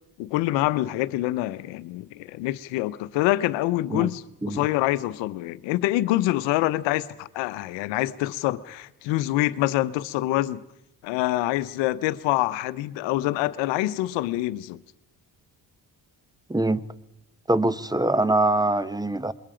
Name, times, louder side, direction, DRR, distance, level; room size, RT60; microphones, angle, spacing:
voice 1, 0.2-10.6 11.0-14.8, left 16 dB, 90° left, 0.8 m, -26 dB
voice 2, 16.5-16.8 17.5-19.3, right 2 dB, 10° right, 1.0 m, -23 dB
27.0 x 21.5 x 5.0 m
supercardioid pair, 60°, 43 cm